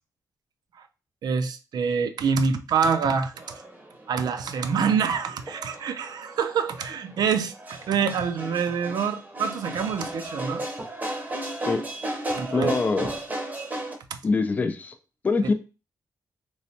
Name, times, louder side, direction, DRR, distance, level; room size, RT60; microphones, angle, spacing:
voice 1, 1.2-3.3 4.1-10.6 12.4-12.8 14.1-14.2, right 6 dB, 75° right, 0.4 m, -26 dB
sound 1, 3.3-13.9, right 1 dB, 25° right, 0.7 m, -35 dB
voice 2, 12.5-13.1 14.2-14.9 15.2-15.5, left 4 dB, 25° left, 0.3 m, -24 dB
3.3 x 3.1 x 2.7 m
wide cardioid pair, 175°, 7 cm